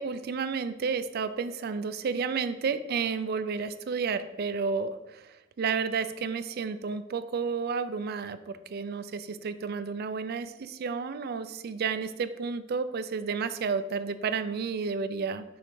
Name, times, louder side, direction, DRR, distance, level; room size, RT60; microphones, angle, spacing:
voice 1, 0.0-5.2 5.6-15.4, right 5 dB, 50° right, 11 dB, 0.4 m, -31 dB
6.3 x 3.3 x 4.7 m, 0.98 s
head